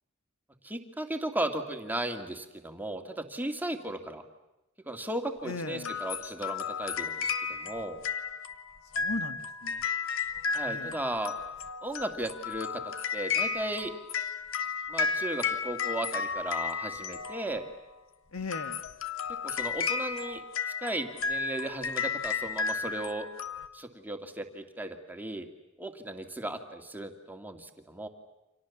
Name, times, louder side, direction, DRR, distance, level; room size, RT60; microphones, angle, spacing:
voice 1, 0.6-4.2 4.9-8.0 10.5-11.3 11.8-13.9 14.9-17.7 19.4-20.4 20.8-23.3 23.7-25.5 25.8-28.1, right 1 dB, 10° right, 5 dB, 2.3 m, -36 dB
voice 2, 5.4-6.0 9.0-9.9 10.7-11.0 18.3-18.9, left 3 dB, 85° left, 9 dB, 1.8 m, -38 dB
sound 1, 5.8-17.8 18.4-23.7, left 6 dB, 70° left, 1.5 m, -33 dB
29.5 x 26.5 x 7.3 m, 1.0 s
head